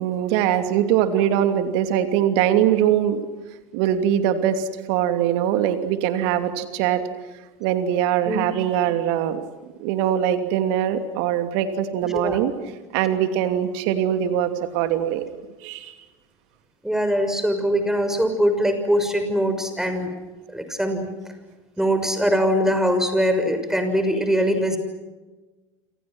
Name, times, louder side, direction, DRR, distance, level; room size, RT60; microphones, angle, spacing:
voice 1, 0.0-3.2 3.7-7.0 7.6-9.4 9.8-12.5 12.9-15.2 15.6-15.9, right 10 dB, 60° right, 8 dB, 2.9 m, -22 dB
voice 2, 12.0-12.4 16.8-20.1 20.5-21.1 21.8-24.8, equal, 5° right, 7 dB, 6.3 m, -22 dB
28.0 x 27.0 x 6.3 m, 1.2 s
hypercardioid pair, 80°, 15 cm